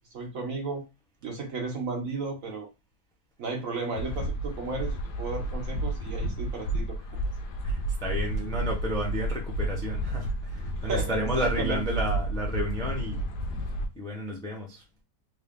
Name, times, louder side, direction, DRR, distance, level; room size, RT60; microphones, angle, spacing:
voice 1, 0.1-0.8 1.2-2.7 3.4-7.0 10.9-11.8, right 4 dB, 60° right, 1.0 m, -34 dB
sound 1, 4.0-13.9, right 1 dB, 75° left, 1.2 m, -31 dB
voice 2, 7.6-13.3 13.9-14.8, equal, 5° left, 0.4 m, -32 dB
3.6 x 2.3 x 3.5 m
omnidirectional pair, 1.9 m